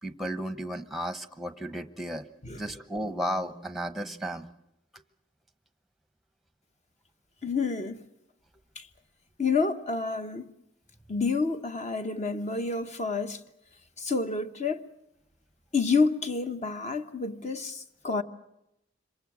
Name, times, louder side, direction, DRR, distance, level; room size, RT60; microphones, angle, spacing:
voice 1, 0.0-2.3 2.6-4.6, equal, ahead, 1.0 m, -34 dB
voice 2, 7.4-8.0 8.8-8.9 9.4-10.5 11.1-13.4 14.0-14.8 15.7-18.2, left 4 dB, 35° left, 1.1 m, -29 dB
26.5 x 23.5 x 6.2 m
head